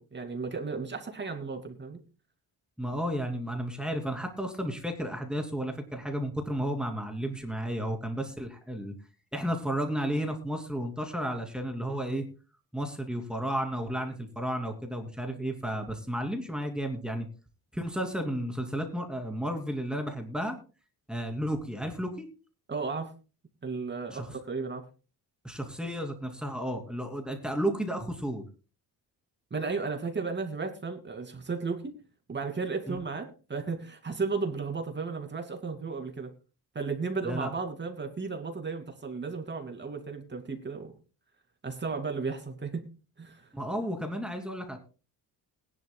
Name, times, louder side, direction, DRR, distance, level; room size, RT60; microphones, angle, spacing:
voice 1, 0.0-2.0 22.7-23.1 23.6-24.8 29.5-32.0 32.3-36.3 36.7-40.9 41.6-42.8 43.2-43.5, right 4 dB, 25° right, 5 dB, 2.6 m, -34 dB
voice 2, 2.8-8.9 9.3-12.2 12.7-17.3 17.7-20.6 21.1-22.3 24.1-24.3 25.4-28.4 32.9-33.0 37.2-37.5 43.5-44.8, equal, ahead, 3 dB, 2.9 m, -33 dB
20.5 x 11.0 x 2.3 m, 0.34 s
cardioid pair, 115°, 39 cm